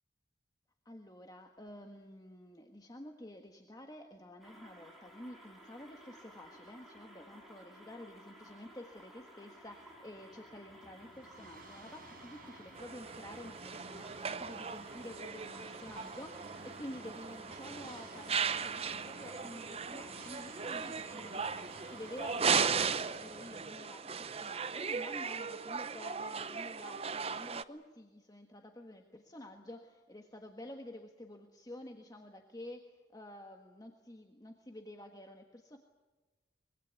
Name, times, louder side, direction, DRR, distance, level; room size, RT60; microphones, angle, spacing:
voice 1, 0.8-35.8, left 1 dB, 20° left, 4 dB, 1.5 m, -50 dB
sound 1, 4.4-23.1, equal, ahead, 5.4 m, -56 dB
sound 2, 9.6-23.6, right 2 dB, 50° right, 5.2 m, -55 dB
sound 3, 12.8-27.6, right 6 dB, 35° right, 0.7 m, -37 dB
24.5 x 22.0 x 8.3 m, 1.2 s
head